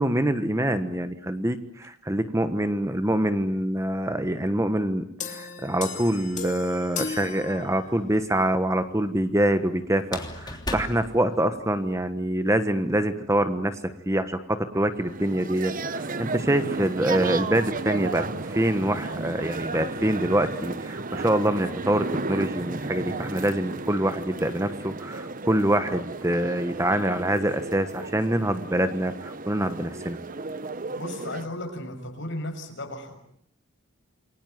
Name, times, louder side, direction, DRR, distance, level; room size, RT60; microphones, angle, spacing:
voice 1, 0.0-13.8 14.1-30.2, right 1 dB, 15° right, 10 dB, 1.3 m, -25 dB
sound 1, 5.2-8.2, left 6 dB, 35° left, 3.0 m, -36 dB
sound 2, 6.9-7.6 10.0-12.0, left 2 dB, 20° left, 3.1 m, -37 dB
sound 3, 15.0-31.5, right 3 dB, 40° right, 1.1 m, -34 dB
voice 2, 31.0-33.1, left 1 dB, 60° left, 4 dB, 6.6 m, -35 dB
28.5 x 22.5 x 9.3 m, 0.68 s
head